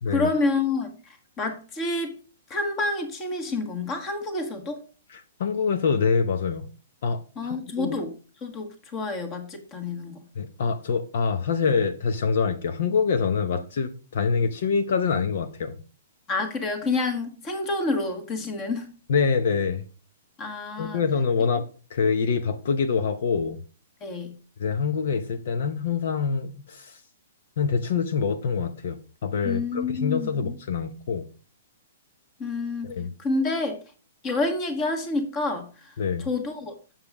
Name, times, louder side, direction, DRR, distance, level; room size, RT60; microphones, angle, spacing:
voice 1, 0.1-2.1 2.5-4.8 7.4-8.1 8.4-10.2 16.3-18.9 20.4-21.0 24.0-24.3 29.4-30.5 32.4-32.9 33.2-33.8 34.2-36.7, left 3 dB, 20° left, 1.5 m, -28 dB
voice 2, 5.1-6.7 7.0-8.0 10.3-15.8 19.1-19.8 20.8-23.6 24.6-27.0 27.6-31.3 32.8-33.1 36.0-36.3, left 5 dB, 60° left, 0.8 m, -25 dB
7.5 x 7.3 x 3.5 m
hypercardioid pair, 165°, 0 cm